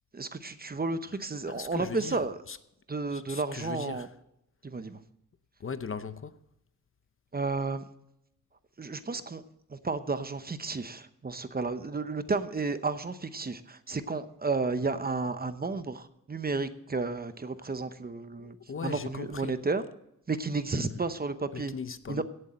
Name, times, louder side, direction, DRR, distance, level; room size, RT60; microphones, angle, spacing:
voice 1, 0.1-2.4 2.9-4.1 4.6-5.0 7.3-7.8 8.8-9.4 9.7-18.6 18.8-19.8 20.3-21.7 22.1-22.2, right 3 dB, 30° right, 0.8 m, -32 dB
voice 2, 1.5-2.6 3.1-4.1 5.6-6.4 18.4-19.6 20.7-21.1 21.5-22.2, left 6 dB, 40° left, 0.7 m, -39 dB
17.0 x 7.9 x 4.2 m
wide cardioid pair, 115°, 33 cm